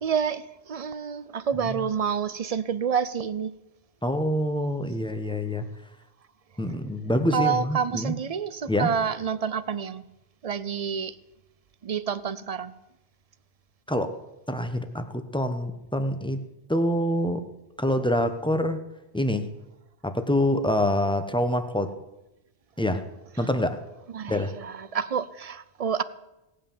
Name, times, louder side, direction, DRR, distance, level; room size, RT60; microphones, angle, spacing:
voice 1, 0.0-3.5 7.3-10.1 10.4-11.2 11.8-12.7 23.4-23.5 24.1-26.0, right 7 dB, 40° right, 0.6 m, -28 dB
voice 2, 4.0-5.7 6.6-8.1 8.7-8.9 13.9-14.2 14.5-17.5 17.8-18.8 19.1-19.5 20.0-21.9 22.8-23.0 23.4-23.8 24.3-24.6, left 1 dB, 5° left, 1.0 m, -26 dB
17.5 x 8.7 x 7.2 m
omnidirectional pair, 1.1 m